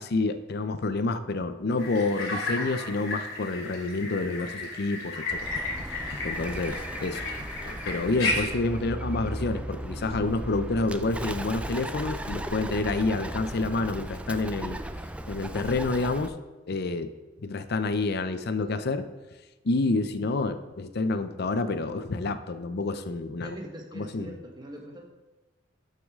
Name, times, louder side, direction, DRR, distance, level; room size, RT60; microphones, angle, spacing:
voice 1, 0.0-5.5 6.2-7.2 7.6-14.8 15.3-16.3 16.7-17.1 17.4-19.1 19.6-23.5 24.0-24.3, left 3 dB, 55° left, 11 dB, 0.6 m, -28 dB
sound 1, 1.8-8.5, left 2 dB, 80° left, 2.9 m, -33 dB
Bird, 5.3-16.3, right 1 dB, 5° right, 0.3 m, -36 dB
voice 2, 23.4-25.1, equal, 20° right, 1 dB, 1.4 m, -42 dB
11.5 x 6.4 x 3.7 m, 1.1 s
head